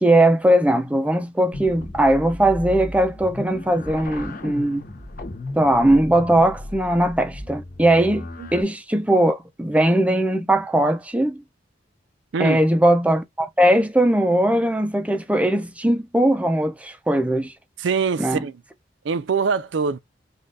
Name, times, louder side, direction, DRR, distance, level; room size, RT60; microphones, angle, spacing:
voice 1, 0.0-4.8 5.6-11.4 12.4-17.5 18.2-18.4, right 1 dB, 10° right, 0.6 m, -19 dB
sound 1, 1.5-8.6, left 1 dB, 50° left, 1.2 m, -35 dB
voice 2, 17.8-18.6 19.0-20.0, right 5 dB, 85° right, 0.4 m, -23 dB
5.4 x 2.5 x 3.8 m
head